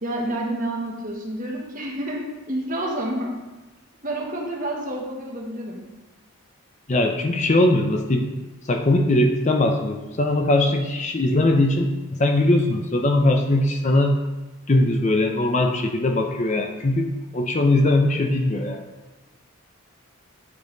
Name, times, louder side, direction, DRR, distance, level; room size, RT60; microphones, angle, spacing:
voice 1, 0.0-3.4 4.0-5.9, right 1 dB, 35° right, -1 dB, 1.3 m, -29 dB
voice 2, 6.9-8.3 8.7-14.2 14.7-18.8, left 1 dB, 30° left, 4 dB, 0.6 m, -20 dB
9.3 x 5.5 x 3.9 m, 1.1 s
head